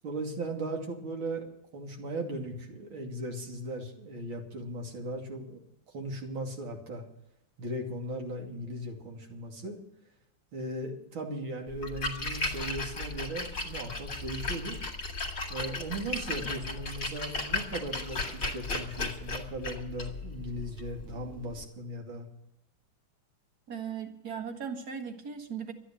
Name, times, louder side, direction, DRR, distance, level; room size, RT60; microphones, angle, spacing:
voice 1, 0.0-1.5 1.7-5.6 5.9-7.0 7.6-9.8 10.5-14.8 15.5-22.3, right 1 dB, 85° right, 1 dB, 3.4 m, -37 dB
Splash splatter, 11.7-21.6, left 3 dB, 45° left, 2.0 m, -36 dB
voice 2, 23.7-25.7, right 7 dB, 50° right, 5 dB, 2.2 m, -38 dB
12.5 x 10.0 x 8.9 m, 0.83 s
omnidirectional pair, 2.2 m